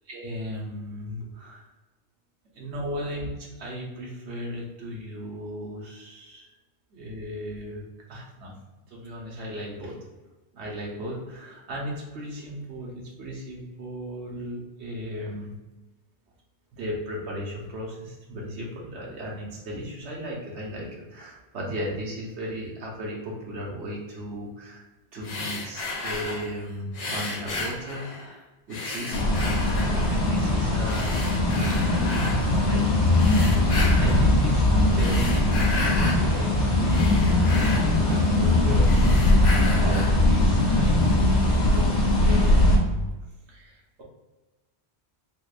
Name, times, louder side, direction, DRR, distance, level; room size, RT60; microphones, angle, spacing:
voice 1, 0.1-1.6 2.5-6.5 6.9-7.8 8.1-8.5 8.9-10.0 10.5-15.5 16.7-24.8 25.1-28.4 28.7-31.4 31.9-33.2 33.6-39.3 39.6-41.2 41.7-41.9 42.2-43.1 43.5-44.0, equal, 75° right, -2 dB, 1.2 m, -35 dB
sound 1, 25.2-26.5 26.9-28.3 28.7-30.3 30.8-32.4 33.1-34.3 34.8-36.2 36.6-38.5 38.8-40.2, left 2 dB, 45° left, 0.5 m, -33 dB
sound 2, 29.1-42.8, left 1 dB, 85° left, 1.1 m, -21 dB
3.7 x 2.9 x 2.4 m, 1.2 s
omnidirectional pair, 1.1 m